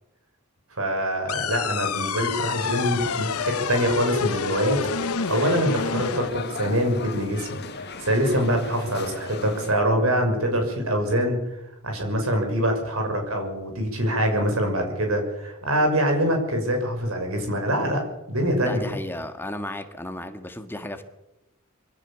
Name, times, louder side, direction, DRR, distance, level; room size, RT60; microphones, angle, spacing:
voice 1, 0.8-4.8 5.3-7.6 8.0-11.4 11.8-18.0 18.3-18.8, equal, 70° right, 4 dB, 6.4 m, -24 dB
sound 1, 1.3-6.3, left 6 dB, 85° left, 0.9 m, -28 dB
sound 2, 2.4-9.7, left 4 dB, 50° left, 1.9 m, -38 dB
voice 2, 18.6-21.0, left 1 dB, 10° left, 7 dB, 1.7 m, -34 dB
23.0 x 16.5 x 7.1 m, 0.95 s
head